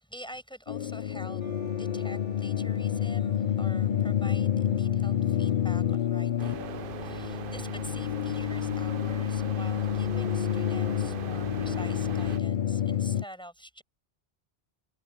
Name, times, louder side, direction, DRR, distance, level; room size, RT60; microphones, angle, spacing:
voice 1, 0.0-13.8, equal, 5° left, 7.2 m, -47 dB
sound 1, 0.7-13.2, left 9 dB, 55° left, 0.6 m, -29 dB
sound 2, 1.4-7.7, right 1 dB, 30° right, 5.2 m, -55 dB
sound 3, 6.4-12.4, right 9 dB, 55° right, 0.7 m, -41 dB
omnidirectional pair, 1.2 m